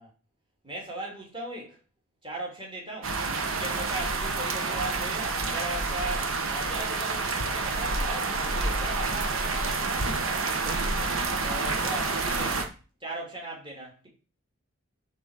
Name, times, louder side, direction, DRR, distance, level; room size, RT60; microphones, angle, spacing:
voice 1, 0.6-1.8 2.2-3.2 3.4-12.7 13.0-14.1, right 1 dB, 25° right, 2.8 m, -38 dB
sound 1, 3.0-12.6, right 3 dB, 75° right, 1.3 m, -28 dB
8.5 x 4.2 x 6.5 m
head